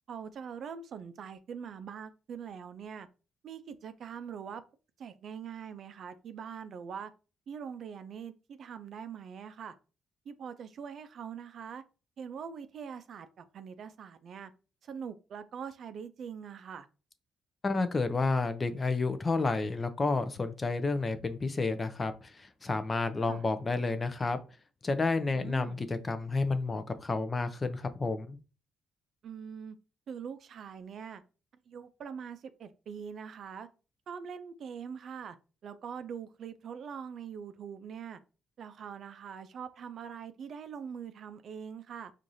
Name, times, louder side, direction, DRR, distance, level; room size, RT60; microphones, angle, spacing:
voice 1, 0.1-3.1 3.4-4.6 5.0-7.1 7.5-9.7 10.3-11.8 12.2-14.5 14.8-16.9 23.3-23.4 25.3-25.8 29.2-29.8 30.1-31.2 31.7-33.7 34.1-35.4 35.6-38.2 38.6-42.1, right 7 dB, 60° right, 0.4 m, -43 dB
voice 2, 17.6-24.4 24.8-28.4, left 3 dB, 30° left, 0.5 m, -30 dB
4.6 x 2.5 x 2.6 m
cardioid pair, 90°, 0 cm